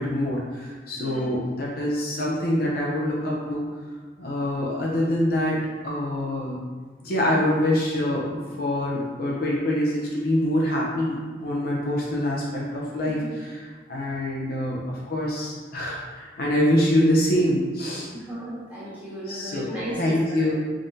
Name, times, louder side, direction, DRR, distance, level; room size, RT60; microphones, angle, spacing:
voice 1, 0.0-3.7 4.2-5.6 5.8-6.6 7.0-18.1 19.3-20.5, left 1 dB, 55° left, -4 dB, 0.7 m, -25 dB
voice 2, 1.0-1.4 13.2-13.3 18.1-20.2, right 1 dB, 10° right, -11 dB, 1.5 m, -35 dB
3.6 x 3.6 x 2.7 m, 1.5 s
head